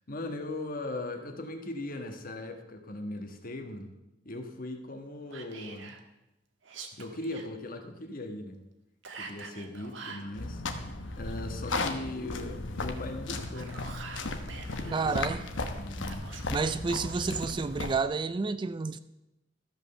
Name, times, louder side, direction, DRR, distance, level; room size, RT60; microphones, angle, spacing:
voice 1, 0.0-3.9 4.2-5.9 6.9-8.6 9.2-13.8 14.8-15.4 15.7-16.3, left 2 dB, 50° left, 1.4 m, -39 dB
Whispering, 5.3-6.0 6.6-7.5 9.0-10.3 13.3-15.2 16.0-17.3, right 4 dB, 75° right, 1.3 m, -45 dB
sound 1, 10.3-18.0, left 2 dB, 75° left, 1.1 m, -36 dB
voice 2, 14.9-15.4 16.5-19.0, right 4 dB, 25° right, 0.3 m, -30 dB
13.5 x 5.5 x 6.7 m
head